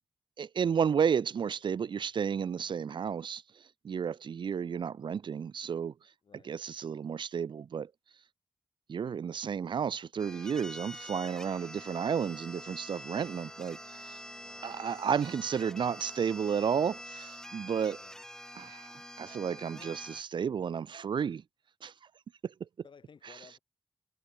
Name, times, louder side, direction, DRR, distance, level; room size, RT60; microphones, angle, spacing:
voice 1, 0.4-5.9 6.4-7.9 8.9-14.2 14.6-18.0 18.6-21.4 21.8-21.9 22.4-22.7, right 7 dB, 70° right, 0.5 m, -32 dB
voice 2, 6.2-6.6 14.3-14.7 18.0-18.3 19.7-20.0 22.8-23.6, left 6 dB, 75° left, 4.7 m, -57 dB
sound 1, 10.2-20.2, left 1 dB, 5° left, 1.2 m, -46 dB
Brass instrument, 12.6-17.0, right 7 dB, 90° right, 1.9 m, -61 dB
wide cardioid pair, 75°, 8 cm